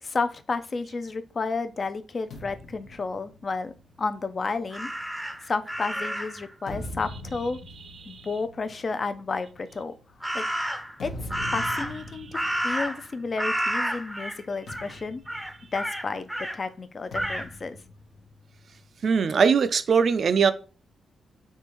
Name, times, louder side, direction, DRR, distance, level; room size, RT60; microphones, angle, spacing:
voice 1, 0.0-3.7 4.0-4.9 5.4-7.6 8.1-9.9 10.3-10.4 11.0-15.2 15.7-17.8, left 4 dB, 45° left, 0.4 m, -31 dB
sound 1, 2.3-5.9 6.4-13.8 14.1-14.3 14.7-16.3 17.1-18.9, left 1 dB, 80° left, 0.8 m, -43 dB
Crow, 4.7-6.5 10.2-11.0 11.3-13.1 13.4-14.4 14.7-14.9 15.3-16.6 17.1-17.5, equal, 5° right, 0.6 m, -30 dB
voice 2, 19.0-20.5, right 6 dB, 60° right, 0.3 m, -21 dB
3.5 x 2.5 x 3.0 m
cardioid pair, 70°, 0 cm